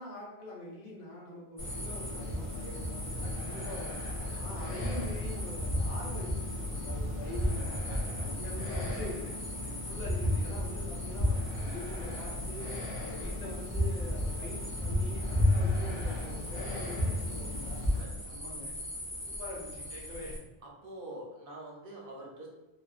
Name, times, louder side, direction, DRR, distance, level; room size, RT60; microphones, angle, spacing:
voice 1, 0.0-4.0 4.3-7.8 8.1-9.4 9.6-12.7 13.0-17.9 18.2-18.7 19.3-20.3, left 2 dB, 70° left, -6 dB, 1.1 m, -44 dB
sound 1, 1.6-18.0, left 1 dB, 40° left, 0.5 m, -33 dB
sound 2, 1.6-20.4, equal, 15° left, 0.9 m, -43 dB
voice 2, 7.9-8.3 17.9-18.4 20.6-22.5, right 1 dB, 65° right, -1 dB, 0.7 m, -46 dB
2.4 x 2.3 x 2.3 m, 1.0 s
omnidirectional pair, 1.1 m